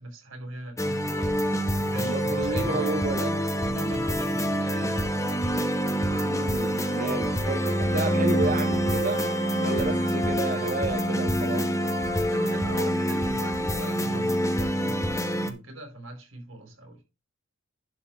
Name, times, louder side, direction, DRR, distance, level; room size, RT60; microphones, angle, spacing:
voice 1, 0.0-3.0 3.6-5.2 12.3-17.0, right 1 dB, 75° right, 4.6 m, -41 dB
sound 1, 0.8-15.5, equal, 15° left, 1.2 m, -26 dB
voice 2, 2.0-3.4 6.2-9.2 9.6-11.7, right 3 dB, 40° right, 0.8 m, -31 dB
11.5 x 4.3 x 5.9 m
head